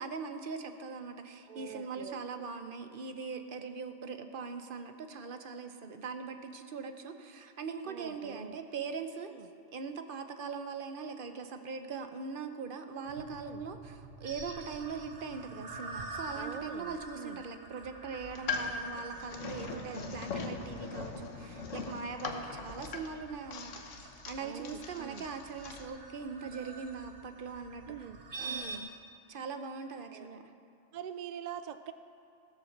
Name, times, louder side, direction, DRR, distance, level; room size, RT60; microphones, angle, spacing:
voice 1, 0.0-9.3 9.7-27.8 28.4-28.9 29.3-30.4, right 5 dB, 50° right, 7 dB, 0.9 m, -41 dB
voice 2, 1.5-2.6 7.8-8.6 9.3-9.5 13.4-13.6 16.3-17.4 19.7-20.2 24.4-25.3 27.6-28.9 30.1-30.3 30.9-31.9, right 9 dB, 70° right, 10 dB, 0.4 m, -45 dB
sound 1, 13.1-28.8, right 3 dB, 90° right, 1.6 m, -47 dB
sound 2, 18.2-25.9, left 4 dB, 75° left, 1.3 m, -41 dB
16.0 x 7.5 x 6.5 m, 2.8 s
omnidirectional pair, 1.3 m